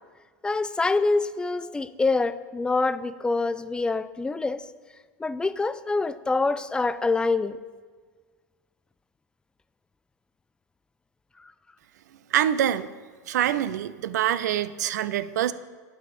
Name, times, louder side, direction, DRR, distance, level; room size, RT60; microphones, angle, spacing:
voice 1, 0.4-4.7 5.2-7.6 11.4-11.5, left 3 dB, 10° left, 14 dB, 0.3 m, -25 dB
voice 2, 12.3-12.9 13.3-15.5, right 11 dB, 70° right, 16 dB, 0.4 m, -25 dB
11.0 x 4.8 x 5.3 m, 1.5 s
figure-of-eight pair, 85°, 10 cm